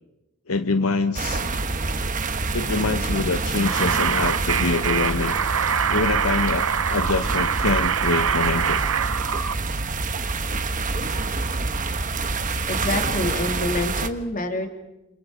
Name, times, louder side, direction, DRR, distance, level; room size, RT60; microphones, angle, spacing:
voice 1, 0.5-1.5 2.5-5.4 5.9-8.8, left 3 dB, 75° left, 9 dB, 0.9 m, -25 dB
sound 1, 1.1-14.1, right 3 dB, 40° right, 1.2 m, -27 dB
sound 2, 3.6-9.5, right 7 dB, 65° right, 0.7 m, -24 dB
voice 2, 12.7-14.7, left 2 dB, 40° left, 5 dB, 2.8 m, -27 dB
29.0 x 27.5 x 5.0 m, 0.98 s
head